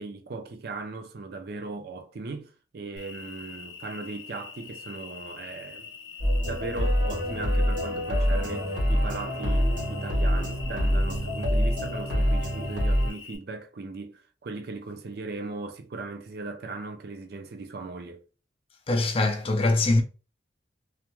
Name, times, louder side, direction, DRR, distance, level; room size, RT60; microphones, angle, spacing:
voice 1, 0.0-5.9 6.5-18.2, right 3 dB, 55° right, 0.4 m, -38 dB
Cricket, 3.0-13.4, left 5 dB, 85° left, 0.6 m, -44 dB
sound 1, 6.2-13.1, equal, 85° right, 1.2 m, -25 dB
voice 2, 18.9-20.0, left 2 dB, 30° left, 0.4 m, -23 dB
2.4 x 2.1 x 2.9 m
head